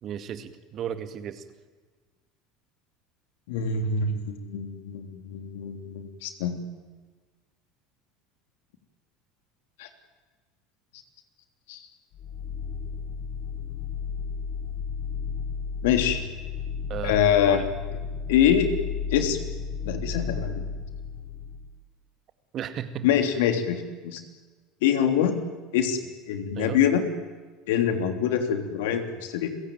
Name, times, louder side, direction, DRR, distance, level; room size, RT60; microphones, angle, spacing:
voice 1, 0.0-1.5 16.9-17.2 17.5-17.7 22.5-23.1 26.6-26.8, right 9 dB, 45° right, 10 dB, 2.2 m, -34 dB
voice 2, 3.5-6.7 9.8-9.9 11.7-11.8 15.8-16.2 17.0-17.7 18.3-18.7 19.1-19.4 19.8-20.6 23.0-24.2 24.8-25.4 25.7-26.0 26.3-27.0 27.7-29.5, left 8 dB, 75° left, 7 dB, 3.2 m, -24 dB
sound 1, 12.1-21.8, left 6 dB, 60° left, 5.0 m, -33 dB
30.0 x 16.5 x 9.4 m, 1.4 s
hypercardioid pair, 80°, 0 cm